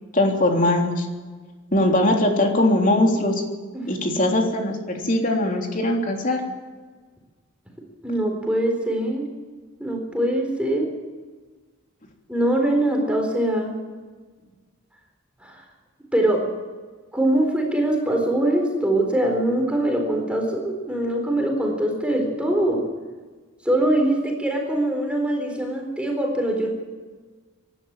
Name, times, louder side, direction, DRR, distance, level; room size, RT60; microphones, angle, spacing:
voice 1, 0.1-1.1 1.7-3.3 3.9-6.4, left 1 dB, 40° left, 1 dB, 3.4 m, -20 dB
voice 2, 8.0-9.3 9.8-10.9 12.3-13.7 15.4-15.6 16.1-16.4 17.1-22.8 23.6-26.7, right 1 dB, 5° right, 1 dB, 4.1 m, -22 dB
24.0 x 12.5 x 8.9 m, 1.4 s
head